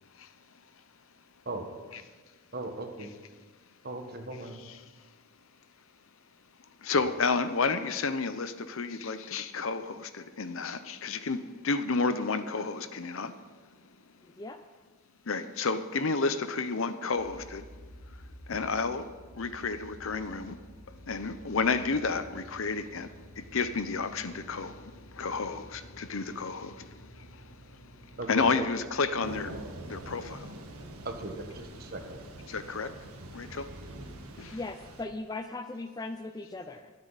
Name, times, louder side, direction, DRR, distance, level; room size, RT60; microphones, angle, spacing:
voice 1, 2.5-3.1 3.8-4.6 28.2-28.6 31.0-32.2, right 2 dB, 45° right, 5 dB, 1.4 m, -38 dB
voice 2, 6.8-13.4 15.3-17.7 18.5-19.1 19.3-20.6 21.1-27.4 28.3-29.6 29.9-30.5 32.5-32.9 33.3-33.7 34.4-34.6, left 4 dB, 65° left, 11 dB, 0.8 m, -31 dB
sound 1, 17.2-33.2, equal, 85° left, 2.9 m, -52 dB
Thunder / Rain, 29.2-35.0, right 1 dB, 80° right, 1.7 m, -45 dB
voice 3, 34.5-36.9, left 2 dB, 20° left, 8 dB, 0.4 m, -38 dB
23.0 x 8.9 x 4.1 m, 1.4 s
head